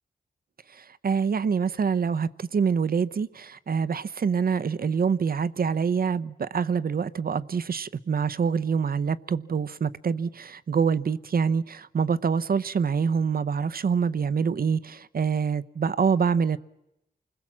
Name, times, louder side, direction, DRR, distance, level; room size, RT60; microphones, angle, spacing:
voice 1, 0.7-16.6, right 6 dB, 65° right, 0.8 m, -26 dB
28.5 x 21.0 x 7.4 m
cardioid pair, 60°, 17 cm